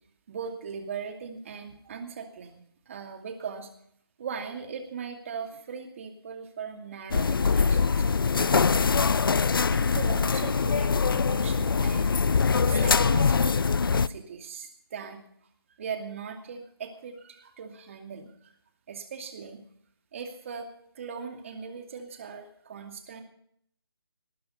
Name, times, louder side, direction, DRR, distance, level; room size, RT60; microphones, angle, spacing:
voice 1, 0.3-3.7 4.2-8.8 9.7-12.2 12.7-15.3 15.8-18.5 18.9-19.6 20.1-20.7 20.9-23.2, right 6 dB, 30° right, 5 dB, 2.5 m, -39 dB
sound 1, 7.1-14.1, left 5 dB, 60° left, 0.6 m, -23 dB
19.0 x 10.5 x 5.4 m, 0.66 s
figure-of-eight pair, 160°, 13 cm